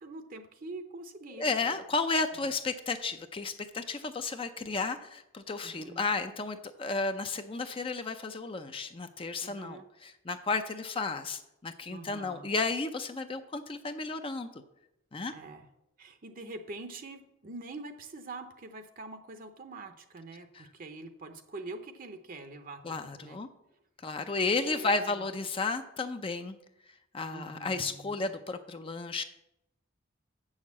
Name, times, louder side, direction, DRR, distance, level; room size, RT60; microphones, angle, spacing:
voice 1, 0.0-1.7 2.3-2.5 5.6-6.0 9.4-9.8 11.9-12.5 15.3-15.7 16.0-23.4 24.4-25.2 27.3-28.3, right 2 dB, 45° right, 8 dB, 0.7 m, -45 dB
voice 2, 1.4-14.6 15.1-15.3 20.5-20.7 22.8-23.5 24.0-26.6 27.1-29.2, left 3 dB, 25° left, 8 dB, 0.5 m, -33 dB
7.6 x 6.4 x 7.2 m, 0.84 s
head